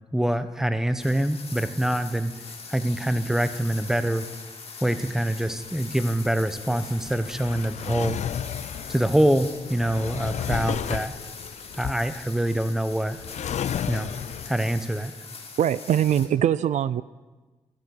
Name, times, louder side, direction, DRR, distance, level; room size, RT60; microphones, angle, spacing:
voice 1, 0.1-2.3 2.7-4.3 4.8-8.2 8.9-11.1 11.7-13.2 13.9-14.1 14.5-15.1, right 1 dB, 5° right, 11 dB, 0.9 m, -25 dB
sound 1, 1.0-16.3, left 4 dB, 55° left, 2.4 m, -42 dB
Drawer open or close, 5.5-14.8, left 9 dB, 70° left, 0.4 m, -33 dB
voice 2, 15.6-17.0, right 10 dB, 75° right, 17 dB, 0.4 m, -22 dB
13.0 x 12.0 x 6.5 m, 1.3 s
cardioid pair, 85°, 12 cm